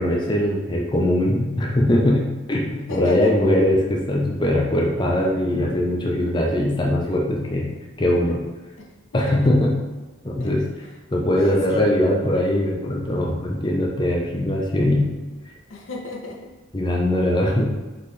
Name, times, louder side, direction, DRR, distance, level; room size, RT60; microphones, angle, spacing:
voice 1, 0.0-7.7 8.0-8.4 9.1-9.7 10.2-10.6 11.1-15.1 16.7-17.8, left 1 dB, 25° left, -1 dB, 0.5 m, -21 dB
voice 2, 2.9-3.3 8.8-9.4 10.4-10.5 11.3-11.8 15.7-16.4, left 2 dB, 85° left, -1 dB, 0.8 m, -33 dB
4.1 x 3.7 x 3.2 m, 1.2 s
head